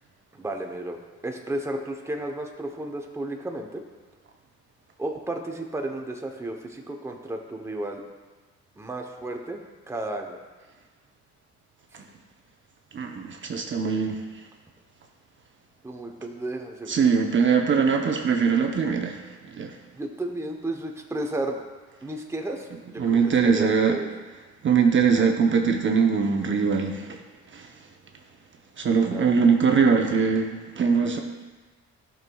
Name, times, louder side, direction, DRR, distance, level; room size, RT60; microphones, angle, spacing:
voice 1, 0.3-1.0 1.2-3.9 5.0-8.0 8.8-9.6 9.9-10.4 15.8-17.1 20.0-21.6 22.0-24.1 29.1-29.3, right 1 dB, 10° right, 2 dB, 0.8 m, -33 dB
voice 2, 12.9-14.2 16.9-19.8 23.0-24.0 24.6-27.2 27.5-27.7 28.8-31.2, right 5 dB, 40° right, 2 dB, 0.7 m, -22 dB
12.0 x 6.3 x 2.3 m, 1.3 s
cardioid pair, 90°, 30 cm